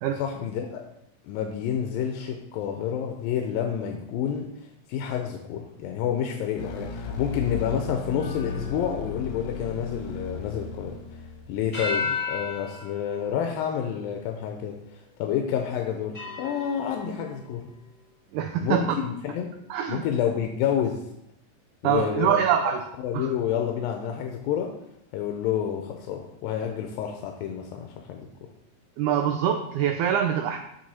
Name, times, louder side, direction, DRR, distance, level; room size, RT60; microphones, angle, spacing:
voice 1, 0.2-0.8 1.2-11.2 11.5-17.7 18.6-19.5 19.9-21.0 21.8-22.4 23.0-24.7 25.1-28.5, left 9 dB, 90° left, 3 dB, 2.4 m, -29 dB
sound 1, 6.6-11.9, left 5 dB, 65° left, 1.9 m, -35 dB
sound 2, 8.2-11.1 11.7-14.5 15.1-15.2 16.1-17.7, left 5 dB, 30° left, 1.4 m, -36 dB
voice 2, 18.3-19.0 19.7-20.0 21.8-22.8 23.1-23.3 29.0-30.6, right 9 dB, 85° right, 5 dB, 1.8 m, -24 dB
7.7 x 6.6 x 4.2 m, 0.82 s
omnidirectional pair, 4.0 m